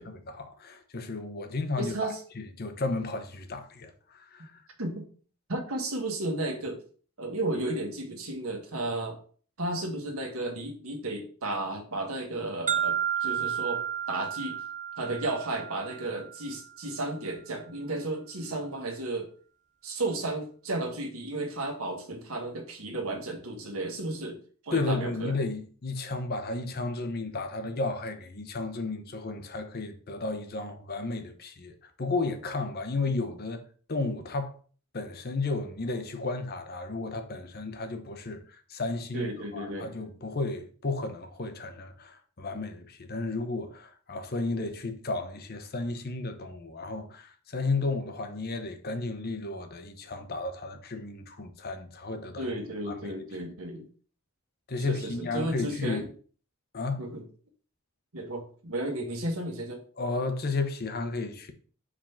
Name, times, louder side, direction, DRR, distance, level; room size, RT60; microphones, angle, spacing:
voice 1, 0.1-4.6 24.7-34.5 34.9-52.5 52.9-53.2 54.7-56.1 56.7-57.0 60.0-61.5, left 3 dB, 45° left, 0.8 m, -33 dB
voice 2, 1.8-2.2 4.8-5.0 5.5-6.8 7.2-9.2 9.6-13.8 14.1-14.6 15.0-19.3 19.8-25.3 39.1-39.9 52.4-53.9 54.9-56.0 57.0-57.2 58.1-59.8, right 2 dB, 70° right, 1.4 m, -33 dB
sound 1, 12.7-16.7, right 9 dB, 35° right, 0.4 m, -32 dB
4.9 x 3.6 x 5.7 m
head